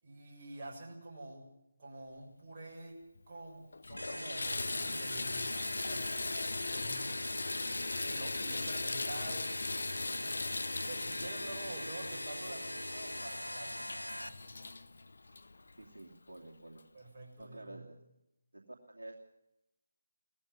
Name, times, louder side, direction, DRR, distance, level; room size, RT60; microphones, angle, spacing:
voice 1, 0.0-1.5 1.8-3.0 3.3-5.5 5.9-6.1 6.6-7.2 8.0-9.5 10.1-10.4 10.8-14.7 16.9-17.8, right 2 dB, 35° right, -2 dB, 7.0 m, -48 dB
Water tap faucet / Bathtub (filling or washing), 3.2-3.3 3.7-16.1 16.8-16.9 17.4-17.5, left 3 dB, 60° left, 0.8 m, -39 dB
sound 1, 4.0-14.3, left 1 dB, 90° left, 1.4 m, -42 dB
voice 2, 15.8-16.8 17.4-18.0 18.5-19.1, right 1 dB, 70° right, -1 dB, 2.8 m, -50 dB
19.0 x 14.5 x 9.6 m, 0.85 s
figure-of-eight pair, 155°, 0 cm